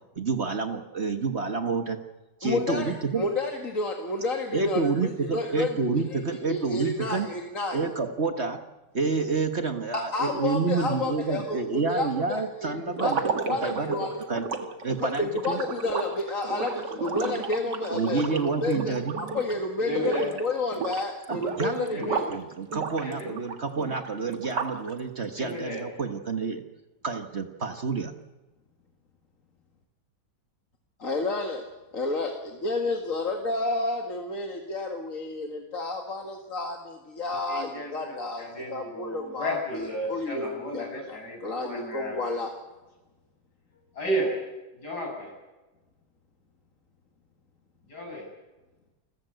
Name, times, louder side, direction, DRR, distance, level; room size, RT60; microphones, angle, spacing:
voice 1, 0.1-2.0 2.4-3.2 4.5-7.3 7.7-8.6 8.9-15.6 17.9-19.2 21.3-26.6 27.0-28.1, right 4 dB, 40° right, 7 dB, 1.6 m, -29 dB
voice 2, 2.4-5.8 6.1-7.8 9.9-11.6 11.9-13.1 13.5-14.1 15.0-18.9 19.3-20.1 20.4-22.3 31.0-31.6 31.9-42.5, left 2 dB, 50° left, 2 dB, 2.4 m, -30 dB
sound 1, 12.9-19.6 19.9-20.4 20.7-22.4 22.7-24.9, right 5 dB, 85° right, 2.4 m, -33 dB
voice 3, 19.8-20.3 21.9-22.2 23.0-23.3 25.4-25.8 37.5-42.2 43.9-44.3 44.8-45.3 47.9-48.3, equal, 70° left, 2 dB, 7.1 m, -33 dB
29.5 x 15.0 x 8.0 m, 1.1 s
omnidirectional pair, 1.8 m